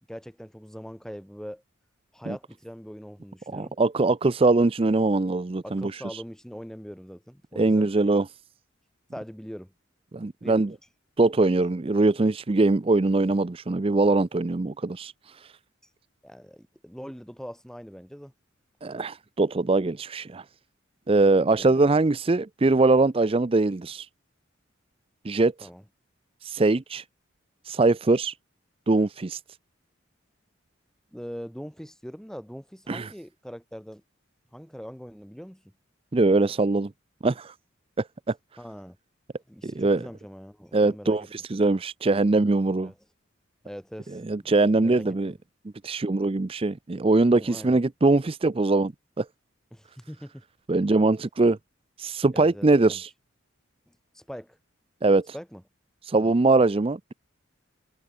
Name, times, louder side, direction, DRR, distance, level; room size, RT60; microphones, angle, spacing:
voice 1, 0.1-1.6 2.1-3.7 5.6-7.9 9.1-9.7 10.4-10.6 16.2-18.3 21.5-22.0 25.6-25.8 31.1-34.0 34.5-35.6 38.6-39.0 39.5-41.3 42.8-43.0 43.6-44.5 44.8-45.3 47.3-47.8 49.7-50.4 52.3-53.0 53.9-54.6 55.3-55.6 56.1-56.3, equal, 5° left, 3.3 m, -42 dB
voice 2, 3.5-6.2 7.6-8.3 10.1-10.7 11.2-15.5 18.8-20.4 21.1-24.1 25.2-25.7 26.4-27.0 27.6-28.3 28.9-29.4 32.9-33.1 36.1-36.9 37.2-37.5 38.0-38.3 39.6-40.1 40.7-42.9 44.1-45.3 45.8-49.3 50.7-51.6 52.0-53.1 55.0-55.3 56.0-57.1, right 3 dB, 30° right, 0.5 m, -22 dB
head